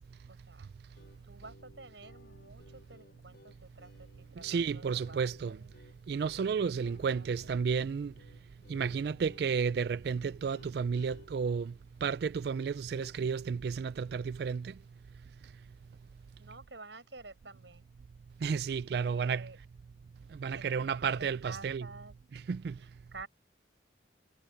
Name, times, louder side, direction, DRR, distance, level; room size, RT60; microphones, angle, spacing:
voice 1, 0.3-5.7 6.8-7.5 16.4-17.9 18.9-19.6 20.5-22.1 22.7-23.3, right 3 dB, 80° right, 7.1 m, -51 dB
sound 1, 0.9-13.1, left 1 dB, 65° left, 4.0 m, -58 dB
voice 2, 4.4-5.6 6.1-8.1 8.7-11.7 12.0-14.7 18.4-19.5 20.3-21.9 22.3-22.8, right 6 dB, 60° right, 0.3 m, -32 dB
head